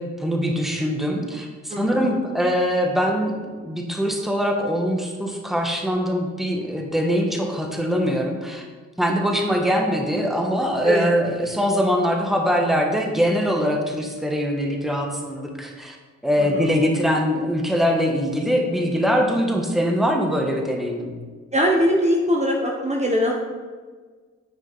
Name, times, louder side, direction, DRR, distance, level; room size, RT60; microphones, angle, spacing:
voice 1, 0.0-3.3 3.6-8.6 9.0-16.0 16.2-21.1, equal, ahead, 1 dB, 1.3 m, -22 dB
voice 2, 1.7-2.2 10.8-11.1 16.4-16.7 21.5-23.3, equal, 20° right, 0 dB, 1.0 m, -22 dB
9.6 x 5.0 x 4.1 m, 1.5 s
cardioid pair, 90°, 30 cm